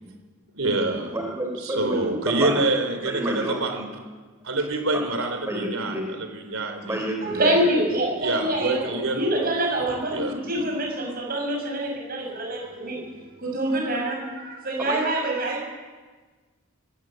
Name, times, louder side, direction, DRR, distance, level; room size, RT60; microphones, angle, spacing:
voice 1, 0.5-1.1 1.6-3.9 4.4-7.0 8.2-9.6 10.1-10.3, right 2 dB, 65° right, 6 dB, 3.9 m, -26 dB
voice 2, 1.1-2.5 3.0-3.6 5.1-5.2 5.5-6.2 6.7-7.5 14.9-15.0, right 1 dB, 10° right, 1 dB, 3.5 m, -29 dB
voice 3, 7.2-13.0 13.4-15.7, right 1 dB, 40° right, 0 dB, 7.3 m, -26 dB
23.0 x 14.5 x 9.3 m, 1.4 s
head